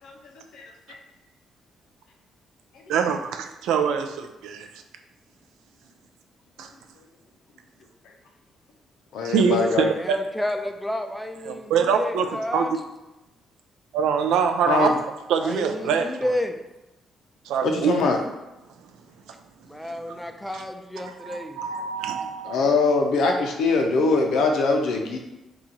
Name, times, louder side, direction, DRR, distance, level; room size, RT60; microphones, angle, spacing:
voice 1, 2.9-4.7 6.6-6.7 9.2-10.2 11.5-12.7 13.9-14.9 15.3-16.3 17.5-17.9 20.5-20.6 21.2-22.6, right 6 dB, 90° right, 6 dB, 0.3 m, -24 dB
voice 2, 9.1-9.9 14.7-14.9 17.6-18.2 22.4-25.2, left 3 dB, 80° left, 3 dB, 0.5 m, -22 dB
voice 3, 9.9-12.7 15.4-16.6 19.7-21.6, left 1 dB, 5° left, 5 dB, 0.4 m, -31 dB
2.9 x 2.3 x 3.9 m, 0.98 s
cardioid pair, 90°, 0 cm